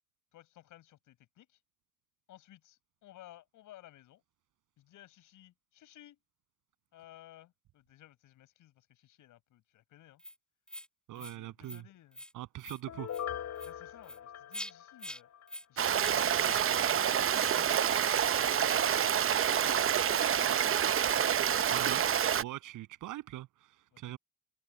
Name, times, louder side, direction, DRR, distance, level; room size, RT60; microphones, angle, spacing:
voice 1, 0.3-1.6 2.3-4.2 4.8-6.2 6.9-10.2 11.1-12.2 13.6-15.3 15.7-17.8 18.3-20.6 23.9-24.2, left 14 dB, 85° left, 7.0 m, -57 dB
sound 1, 10.2-10.3 10.7-10.9 11.2-11.4 11.6-11.8 12.1-12.3 12.6-12.8 13.1-13.2 13.6-13.7 14.0-14.2 14.5-14.7 15.0-15.2 15.5-15.6 16.0-16.2 16.4-16.6 16.9-17.1 17.4-17.6, equal, 5° left, 4.7 m, -44 dB
voice 2, 11.1-11.9 12.3-13.1 21.7-22.0 22.4-24.2, right 15 dB, 90° right, 7.7 m, -42 dB
Piano, 12.9-15.6 16.0-16.1, left 9 dB, 60° left, 7.6 m, -41 dB
Stream, 15.8-22.4, right 9 dB, 45° right, 0.8 m, -28 dB
cardioid pair, 90°, 30 cm